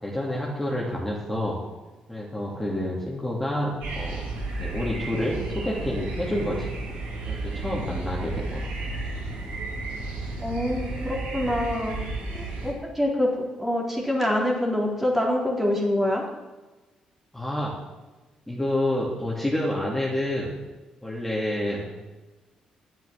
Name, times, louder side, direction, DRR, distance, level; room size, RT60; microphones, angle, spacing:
voice 1, 0.0-1.6 2.1-4.2 4.6-6.7 7.3-8.7 17.3-17.7 18.5-20.5 21.0-22.0, left 1 dB, 10° left, -4 dB, 3.0 m, -28 dB
sound 1, 3.8-12.7, right 2 dB, 80° right, 2.6 m, -33 dB
voice 2, 10.4-12.0 12.3-16.2, left 1 dB, 10° right, -1 dB, 3.7 m, -25 dB
9.2 x 8.1 x 7.6 m, 1.2 s
hypercardioid pair, 45°, 3 cm